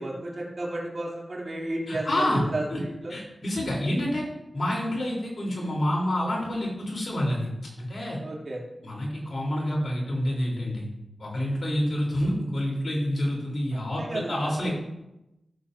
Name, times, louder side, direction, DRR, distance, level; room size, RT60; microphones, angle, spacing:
voice 1, 0.0-3.1 8.2-8.6 13.7-14.8, right 1 dB, 55° right, -4 dB, 3.4 m, -33 dB
voice 2, 1.9-2.4 2.7-2.8 3.1-4.3 4.5-7.5 7.8-8.2 8.8-10.9 11.2-14.8, left 1 dB, 65° left, -3 dB, 4.3 m, -28 dB
16.0 x 7.5 x 2.9 m, 0.91 s
cardioid pair, 45°, 0 cm